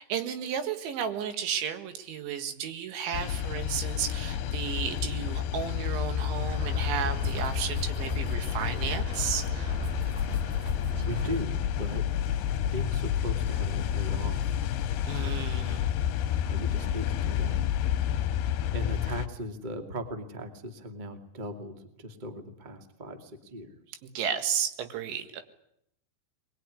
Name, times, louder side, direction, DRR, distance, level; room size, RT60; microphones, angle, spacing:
voice 1, 0.0-9.8 15.1-15.9 24.0-25.4, right 8 dB, 75° right, 8 dB, 4.1 m, -33 dB
sound 1, 3.1-19.3, left 10 dB, 70° left, 2.7 m, -30 dB
sound 2, 6.4-11.4, left 2 dB, 40° right, 5.0 m, -35 dB
voice 2, 11.0-12.1 12.6-14.6 15.2-15.3 16.3-17.6 18.7-24.0, equal, 20° right, 6 dB, 1.2 m, -38 dB
22.5 x 22.0 x 9.8 m, 0.76 s
omnidirectional pair, 5.4 m